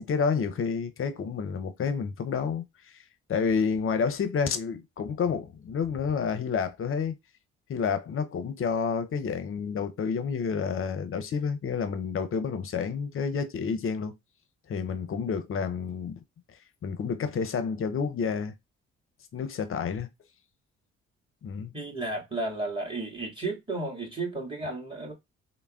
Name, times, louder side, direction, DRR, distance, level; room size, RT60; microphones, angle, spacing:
voice 1, 0.0-3.0 3.3-7.2 7.7-14.1 14.7-16.2 16.8-18.6 19.3-20.1 21.4-21.7, left 6 dB, 45° left, 0.6 m, -29 dB
voice 2, 21.7-25.1, right 2 dB, 15° right, 1.7 m, -33 dB
3.3 x 2.1 x 2.3 m
hypercardioid pair, 45°, 31 cm